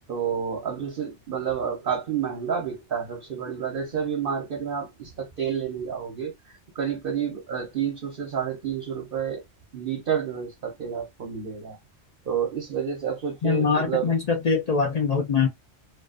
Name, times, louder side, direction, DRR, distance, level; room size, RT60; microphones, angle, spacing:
voice 1, 0.1-6.3 6.7-9.4 9.7-11.8 12.3-14.1, right 7 dB, 55° right, 0.8 m, -29 dB
voice 2, 13.4-15.5, left 5 dB, 65° left, 0.4 m, -23 dB
2.4 x 2.4 x 2.3 m
omnidirectional pair, 1.2 m